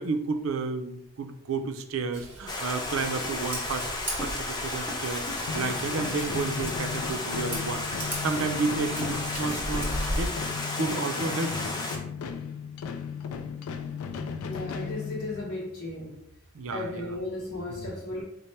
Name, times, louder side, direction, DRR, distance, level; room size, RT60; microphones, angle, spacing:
voice 1, 0.0-3.9 4.2-10.3 10.8-11.7 16.5-17.0 17.7-17.9, right 4 dB, 70° right, 6 dB, 0.4 m, -31 dB
Scissors, 2.1-10.3, equal, 10° right, 0.8 m, -37 dB
Stream, 2.5-12.0, left 2 dB, 20° left, 0.4 m, -33 dB
sound 1, 5.5-15.6, left 6 dB, 85° left, 0.3 m, -36 dB
voice 2, 14.4-16.3 16.7-18.2, left 2 dB, 55° left, -6 dB, 0.9 m, -35 dB
4.1 x 2.1 x 3.2 m, 0.76 s
head